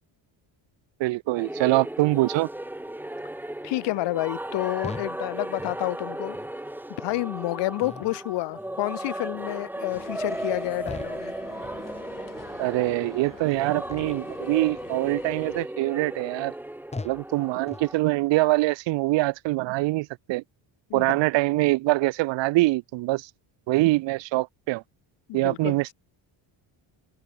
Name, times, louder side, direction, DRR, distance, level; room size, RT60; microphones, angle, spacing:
voice 1, 1.0-2.5 12.6-16.5 17.0-20.4 20.9-23.3 23.7-24.8 25.3-25.9, right 20 dB, 65° right, 0.5 m, -24 dB
sound 1, 1.4-18.0, right 1 dB, 5° right, 1.3 m, -36 dB
voice 2, 3.6-6.4 7.0-11.3 20.9-21.2 25.3-25.8, left 19 dB, 65° left, 0.5 m, -29 dB
Sci-fi Bounce, 4.8-5.2 5.5-5.8 6.3-6.6 7.1-7.3 7.8-8.2 8.6-8.9 9.3-9.6 10.1-10.3 10.8-11.3 11.6-11.9 12.4-12.5 13.1-13.3 13.9-14.3 14.6-14.9 15.4-15.6 16.2-16.3 16.9-17.3 17.7-17.9, left 3 dB, 15° left, 2.0 m, -41 dB
sound 2, 9.9-15.7, left 9 dB, 40° left, 2.1 m, -48 dB
open air
cardioid pair, 140°, 47 cm